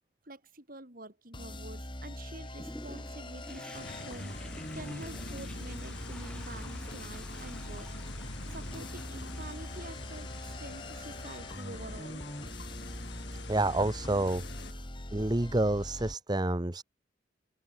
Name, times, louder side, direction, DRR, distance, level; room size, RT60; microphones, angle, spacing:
voice 1, 0.3-4.5 4.7-7.9 8.5-12.2, right 1 dB, 50° right, 5.2 m, -47 dB
sound 1, 1.3-16.1, left 1 dB, 25° left, 5.8 m, -42 dB
Toilet flush, 2.5-15.0 15.5-15.6, left 1 dB, 5° left, 4.9 m, -52 dB
sound 2, 3.7-14.7, left 2 dB, 65° left, 4.6 m, -45 dB
voice 2, 13.5-14.4 14.7-14.8 15.1-16.8, right 2 dB, 20° right, 0.9 m, -29 dB
head